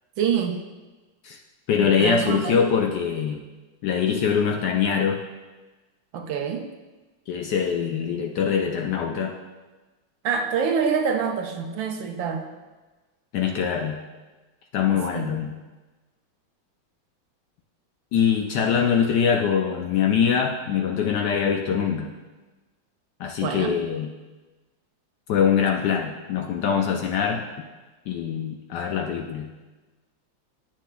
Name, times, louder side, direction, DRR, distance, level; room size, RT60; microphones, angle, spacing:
voice 1, 0.2-0.6 1.8-2.7 6.1-6.7 10.2-12.4 14.9-15.4 23.4-23.7, right 6 dB, 75° right, 3 dB, 1.4 m, -26 dB
voice 2, 1.7-3.4 3.8-5.2 7.3-9.3 13.3-14.0 14.7-15.6 18.1-22.1 23.2-24.1 25.3-27.5 28.1-29.5, left 7 dB, 75° left, 2 dB, 1.0 m, -23 dB
9.8 x 6.0 x 2.2 m, 1.2 s
omnidirectional pair, 2.2 m